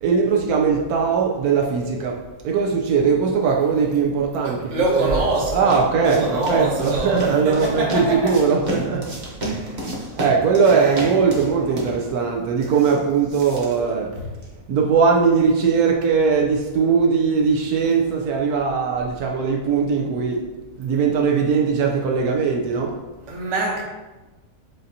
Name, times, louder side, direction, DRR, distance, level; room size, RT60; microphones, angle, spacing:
voice 1, 0.0-9.1 9.4-14.2 14.7-20.5 20.8-23.0, right 5 dB, 85° right, 0 dB, 1.1 m, -20 dB
voice 2, 4.4-8.4 10.6-10.9 14.1-14.3 23.3-23.8, right 2 dB, 55° right, -2 dB, 1.2 m, -24 dB
sound 1, 4.6-14.6, right 1 dB, 35° right, 0.9 m, -34 dB
7.5 x 2.7 x 2.6 m, 1.1 s
omnidirectional pair, 1.6 m